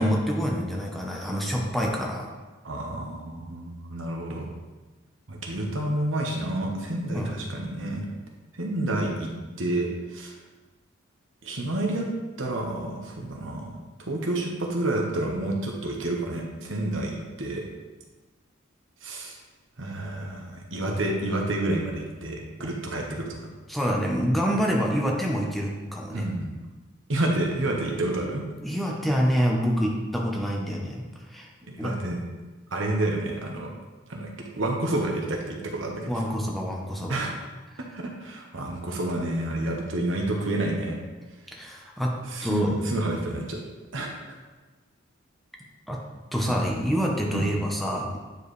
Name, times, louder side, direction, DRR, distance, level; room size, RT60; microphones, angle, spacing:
voice 1, 0.0-2.3 7.1-7.3 23.7-26.2 28.6-31.5 31.8-31.9 36.1-37.2 41.5-42.8 45.9-46.0 46.3-48.2, equal, ahead, -2 dB, 0.8 m, -26 dB
voice 2, 2.6-4.5 5.3-8.0 8.5-9.3 9.6-10.3 11.4-12.1 12.4-17.6 19.0-19.4 19.8-23.3 26.1-26.5 27.1-28.4 31.7-32.2 32.7-33.7 34.1-34.3 34.6-36.2 37.1-37.5 37.9-41.0 42.3-43.6 43.9-44.2 46.5-46.8 47.3-47.4, right 1 dB, 70° right, 0 dB, 1.2 m, -29 dB
9.6 x 4.6 x 3.2 m, 1.2 s
head